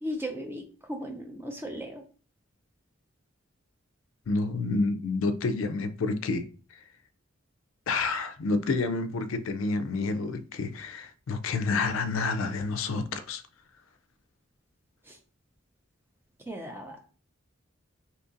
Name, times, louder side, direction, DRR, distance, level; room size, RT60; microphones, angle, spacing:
voice 1, 0.0-2.0 15.1-15.2 16.5-17.0, equal, 10° right, 0.5 m, -36 dB
voice 2, 4.3-6.5 7.9-13.4, left 3 dB, 80° left, 0.4 m, -29 dB
2.8 x 2.5 x 3.7 m
head